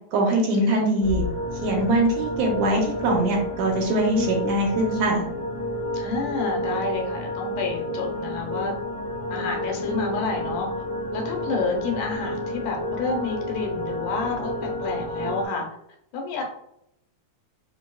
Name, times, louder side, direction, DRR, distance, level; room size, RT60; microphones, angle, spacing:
voice 1, 0.1-1.2 1.6-5.2, right 1 dB, 75° right, 0 dB, 1.9 m, -22 dB
sound 1, 1.0-15.5, left 1 dB, 60° left, 0.9 m, -30 dB
voice 2, 5.9-8.8 9.3-10.7 11.1-15.7 16.1-16.4, left 4 dB, 90° left, 0 dB, 2.5 m, -29 dB
5.5 x 2.7 x 2.3 m, 0.76 s
omnidirectional pair, 3.5 m